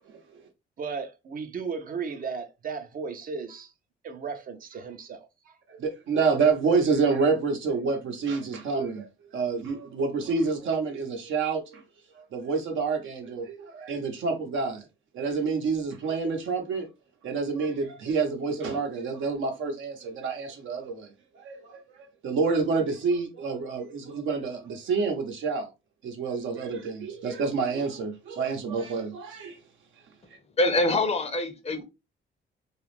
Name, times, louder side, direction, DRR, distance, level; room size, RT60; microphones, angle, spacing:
voice 1, 0.8-3.7 4.0-5.8, right 5 dB, 45° right, 0.5 m, -36 dB
voice 2, 5.8-11.8 12.1-14.9 15.1-16.9 17.2-25.7 26.0-29.6, right 4 dB, 75° right, 0.8 m, -28 dB
voice 3, 30.6-31.8, left 2 dB, 30° left, 0.5 m, -24 dB
2.4 x 2.0 x 3.0 m
cardioid pair, 90°, 20 cm